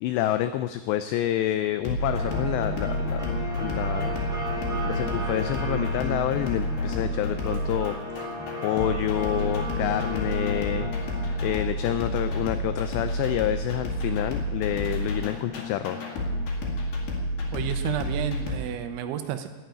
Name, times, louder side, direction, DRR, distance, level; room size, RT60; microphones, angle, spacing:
voice 1, 0.0-3.3 3.6-4.2 4.8-7.9 8.6-16.0, left 12 dB, 85° left, 10 dB, 2.4 m, -28 dB
sound 1, 1.8-18.6, equal, 55° left, 3.5 m, -30 dB
sound 2, 2.1-18.4, left 2 dB, ahead, 2.5 m, -36 dB
voice 2, 17.5-19.5, right 10 dB, 80° right, 8 dB, 3.2 m, -31 dB
12.5 x 9.2 x 8.9 m, 1.2 s
omnidirectional pair, 5.5 m